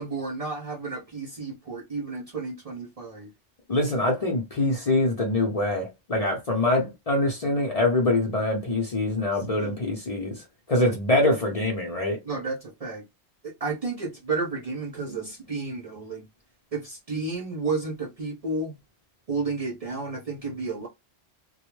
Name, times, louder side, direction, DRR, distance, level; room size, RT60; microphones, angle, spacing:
voice 1, 0.0-3.3 9.6-9.8 10.7-10.9 12.2-13.0 13.4-16.2 16.7-18.8 19.3-20.9, right 3 dB, 50° right, 0.4 m, -32 dB
voice 2, 3.7-10.3 10.7-12.2, left 2 dB, 40° left, 0.6 m, -24 dB
2.2 x 2.1 x 3.0 m
omnidirectional pair, 1.2 m